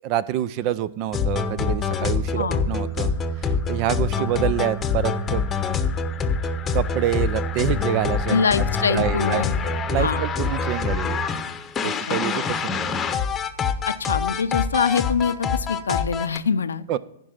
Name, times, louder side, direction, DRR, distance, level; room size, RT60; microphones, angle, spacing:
voice 1, 0.0-3.1 3.4-5.5 6.7-8.4 8.9-11.2 11.8-13.1 16.9-17.0, right 12 dB, 40° right, 19 dB, 0.5 m, -27 dB
sound 1, 1.1-16.4, left 5 dB, 20° left, 0.9 m, -25 dB
voice 2, 8.3-9.5 10.0-10.3 11.8-12.4 13.9-17.0, left 6 dB, 75° left, 13 dB, 0.6 m, -25 dB
15.5 x 5.3 x 5.8 m, 0.78 s
figure-of-eight pair, 110°, 0 cm